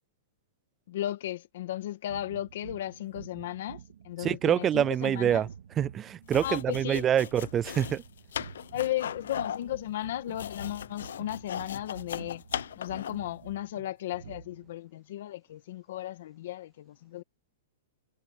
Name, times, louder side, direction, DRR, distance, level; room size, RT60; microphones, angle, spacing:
voice 1, 0.9-5.5 6.4-7.1 8.7-12.4 12.8-17.2, left 13 dB, 45° left, 1.8 m, -35 dB
sound 1, 2.1-14.8, right 8 dB, 65° right, 1.8 m, -48 dB
voice 2, 4.2-5.5 5.8-8.0, right 10 dB, 15° right, 0.3 m, -26 dB
sound 2, 6.2-13.3, left 9 dB, 70° left, 0.8 m, -38 dB
hypercardioid pair, 180°, 0 cm